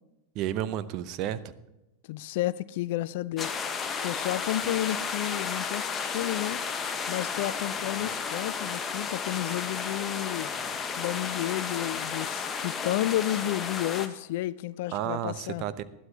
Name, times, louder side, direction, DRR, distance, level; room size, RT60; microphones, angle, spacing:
voice 1, 0.3-1.4 14.9-15.8, right 11 dB, 40° right, 0.7 m, -31 dB
voice 2, 2.1-3.6 4.0-6.6 7.1-10.5 11.0-15.7, left 15 dB, 50° left, 0.4 m, -31 dB
sound 1, 3.4-14.1, left 6 dB, 20° left, 1.1 m, -33 dB
Telephone, 7.7-8.5 8.9-9.3 10.5-11.3 11.6-11.7, equal, ahead, 5.3 m, -53 dB
20.0 x 12.5 x 2.8 m
figure-of-eight pair, 90°, 0 cm